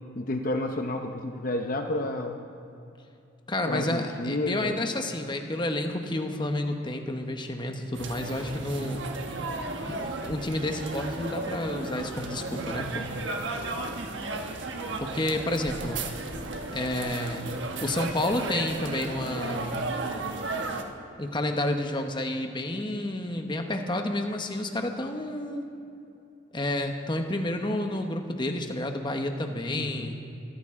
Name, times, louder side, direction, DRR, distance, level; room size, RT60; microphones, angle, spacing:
voice 1, 0.1-2.4 3.7-4.7 29.7-30.1, left 1 dB, 50° left, 4 dB, 0.8 m, -30 dB
voice 2, 3.5-9.1 9.9-13.1 15.0-16.1 16.7-19.8 21.2-25.6 26.5-30.1, left 1 dB, 25° left, 4 dB, 1.1 m, -30 dB
sound 1, 7.9-20.8, right 2 dB, 75° right, 1.3 m, -34 dB
24.0 x 14.0 x 3.7 m, 2.7 s
head